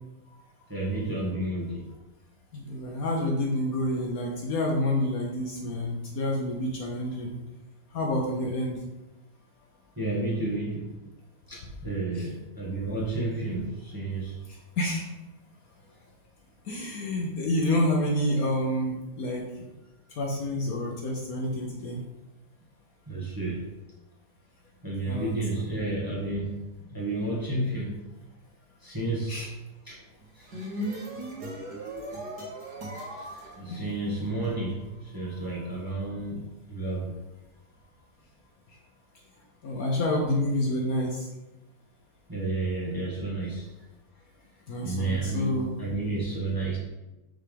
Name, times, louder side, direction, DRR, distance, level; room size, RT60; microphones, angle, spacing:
voice 1, 0.7-1.9 10.0-10.9 11.5-14.4 23.1-23.6 24.8-26.5 26.9-27.9 28.8-29.5 29.8-30.0 30.4-30.5 33.5-36.4 36.7-37.1 42.3-43.7 44.8-46.8, right 2 dB, 15° right, -5 dB, 1.2 m, -31 dB
voice 2, 2.5-7.4 7.9-8.8 12.1-12.3 14.8-15.0 16.7-19.6 20.2-22.0 25.1-25.3 29.3-29.5 33.7-33.8 39.6-41.3 44.7-45.7, left 1 dB, 60° left, -1 dB, 1.2 m, -28 dB
sound 1, 30.2-34.5, right 1 dB, 65° right, 1.9 m, -37 dB
5.6 x 3.5 x 5.1 m, 1.0 s
omnidirectional pair, 1.9 m